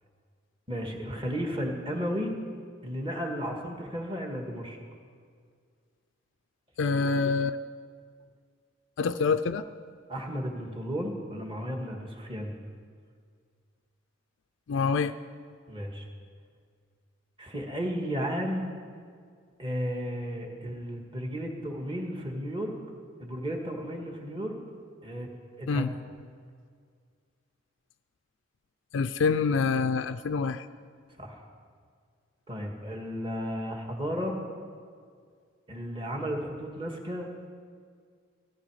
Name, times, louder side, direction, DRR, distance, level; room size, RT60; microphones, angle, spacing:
voice 1, 0.7-2.4 2.8-4.8 10.1-12.5 15.7-16.1 17.4-18.7 19.6-22.7 23.2-24.6 25.0-25.3 25.6-25.9 31.2-31.4 32.5-34.3 35.7-37.3, equal, 25° right, 2 dB, 1.7 m, -33 dB
voice 2, 6.8-7.6 9.0-9.6 14.7-15.1 25.7-25.9 28.9-30.7, left 5 dB, 70° left, 8 dB, 0.4 m, -26 dB
17.0 x 14.0 x 4.9 m, 2.1 s
head